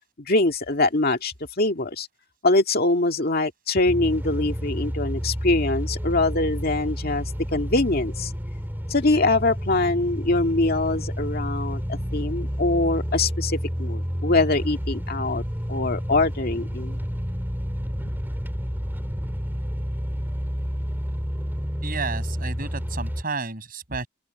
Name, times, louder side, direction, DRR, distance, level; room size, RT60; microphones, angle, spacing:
voice 1, 0.3-2.1 2.4-8.3 8.9-15.4 15.7-17.0 18.0-18.1, left 2 dB, 50° left, 2.1 m, -23 dB
sound 1, 3.9-23.2, equal, 10° right, 5.3 m, -30 dB
voice 2, 21.8-24.1, right 4 dB, 45° right, 6.3 m, -31 dB
open air
head